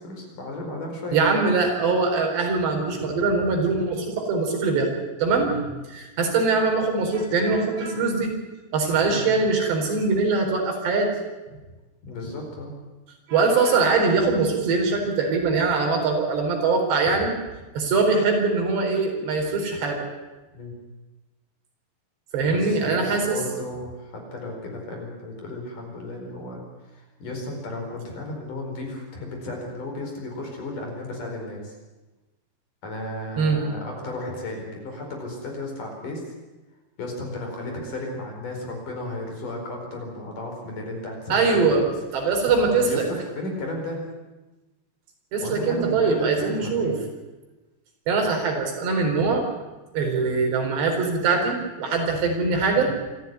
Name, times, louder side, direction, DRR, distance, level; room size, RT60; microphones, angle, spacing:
voice 1, 0.0-1.4 5.5-5.6 9.1-9.2 12.0-12.7 20.5-20.7 22.4-31.8 32.8-36.2 37.0-41.9 42.2-42.3 42.7-44.0 45.4-47.0, left 1 dB, 50° left, 2 dB, 6.1 m, -34 dB
voice 2, 1.1-4.9 5.2-5.5 5.9-8.3 8.7-11.1 13.3-17.3 17.7-20.1 22.3-23.4 33.4-33.6 41.3-41.9 42.1-43.1 45.3-46.9 48.1-49.4 49.9-52.9, right 4 dB, 80° right, 2 dB, 6.4 m, -22 dB
26.0 x 14.5 x 9.7 m, 1.1 s
omnidirectional pair, 4.9 m